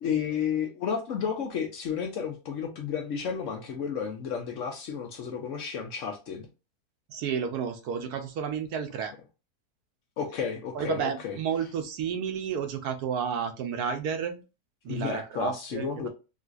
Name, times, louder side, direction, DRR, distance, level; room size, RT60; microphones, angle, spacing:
voice 1, 0.0-6.5 10.2-11.4 14.9-16.1, left 7 dB, 65° left, 0.8 m, -32 dB
voice 2, 7.1-9.1 10.7-14.4 14.8-16.1, right 7 dB, 80° right, 1.1 m, -31 dB
3.8 x 2.4 x 2.4 m
omnidirectional pair, 1.7 m